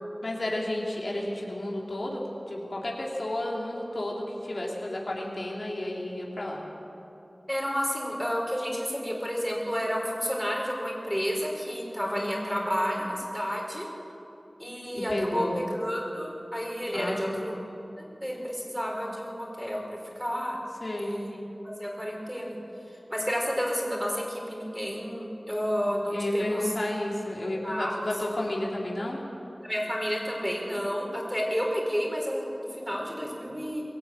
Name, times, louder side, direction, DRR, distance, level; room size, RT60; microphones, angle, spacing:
voice 1, 0.2-6.6 12.0-13.1 14.9-15.6 16.9-17.4 20.8-21.2 26.1-29.2, left 1 dB, 70° left, -2 dB, 3.3 m, -32 dB
voice 2, 7.5-13.9 14.6-17.5 18.0-20.6 21.0-21.4 21.8-22.6 23.1-26.7 27.6-27.9 29.6-33.8, equal, ahead, -1 dB, 4.8 m, -31 dB
22.5 x 14.0 x 9.2 m, 2.9 s
wide cardioid pair, 55°, 0 cm